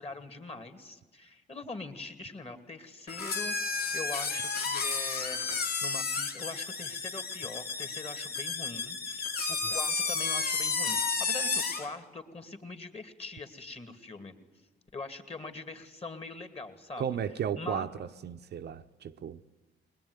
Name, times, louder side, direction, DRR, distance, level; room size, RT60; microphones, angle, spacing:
voice 1, 0.0-5.4 5.8-14.4 14.9-17.0 17.6-17.9, left 3 dB, 30° left, 2.6 m, -42 dB
sound 1, 3.1-11.9, left 4 dB, 55° left, 2.4 m, -32 dB
voice 2, 17.0-19.4, right 8 dB, 55° right, 0.8 m, -35 dB
21.0 x 21.0 x 9.7 m
cardioid pair, 90°, 20 cm